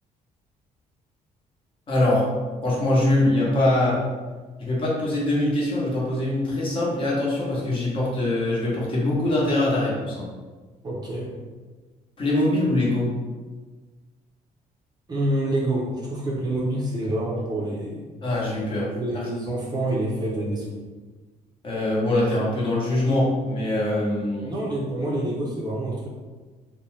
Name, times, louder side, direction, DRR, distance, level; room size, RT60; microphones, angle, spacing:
voice 1, 1.9-2.3 2.6-4.0 4.6-10.3 12.2-13.1 18.2-18.9 21.6-24.5 25.0-25.1, left 1 dB, 35° left, -6 dB, 0.8 m, -23 dB
voice 2, 10.8-11.3 15.1-18.1 18.9-20.8 24.4-26.1, right 1 dB, 30° right, -4 dB, 0.5 m, -27 dB
2.6 x 2.1 x 3.1 m, 1.3 s
cardioid pair, 145°, 15 cm